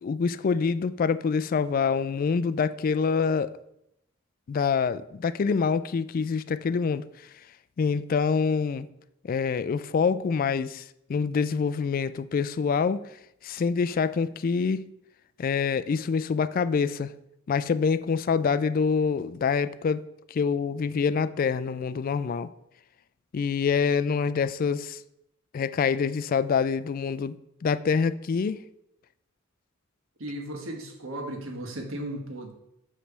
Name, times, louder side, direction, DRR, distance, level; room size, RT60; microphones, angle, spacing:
voice 1, 0.0-3.5 4.5-7.0 7.8-8.9 9.2-10.8 11.1-13.0 13.4-14.9 15.4-17.1 17.5-20.0 20.3-22.5 23.3-25.0 25.5-27.4 27.6-28.6, left 5 dB, 45° left, 0.3 m, -26 dB
voice 2, 30.2-32.5, right 1 dB, 75° right, 1.3 m, -35 dB
8.2 x 3.3 x 6.0 m
head